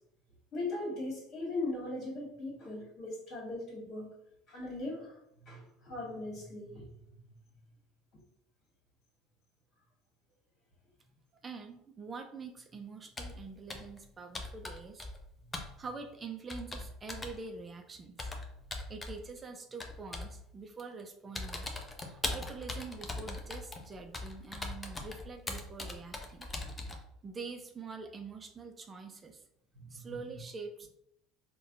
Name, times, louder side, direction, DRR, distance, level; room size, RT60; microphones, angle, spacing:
voice 1, 0.5-4.1 4.5-5.1 5.4-6.9 26.5-26.7 29.7-30.1, left 2 dB, 50° left, -3 dB, 1.5 m, -39 dB
voice 2, 11.4-15.1 15.8-18.3 18.9-21.7 22.0-26.5 27.2-29.4 29.9-30.9, right 4 dB, 30° right, 5 dB, 0.4 m, -45 dB
Computer keyboard, 13.2-13.4 13.7-14.0 14.4-15.3 15.5-15.7 16.5-17.4 18.2-19.2 19.8-20.4 20.8-21.0 21.4-27.0, left 2 dB, 20° left, 0.6 m, -40 dB
3.9 x 2.2 x 2.5 m, 0.76 s
hypercardioid pair, 70°, 0 cm